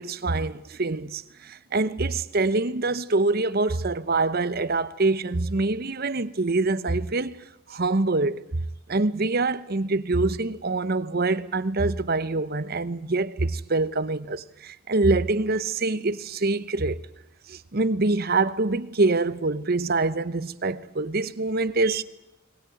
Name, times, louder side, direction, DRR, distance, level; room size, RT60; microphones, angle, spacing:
voice 1, 0.0-7.4 7.7-17.0 17.5-22.0, right 3 dB, 45° right, 0.9 m, -25 dB
20.5 x 19.5 x 9.2 m
head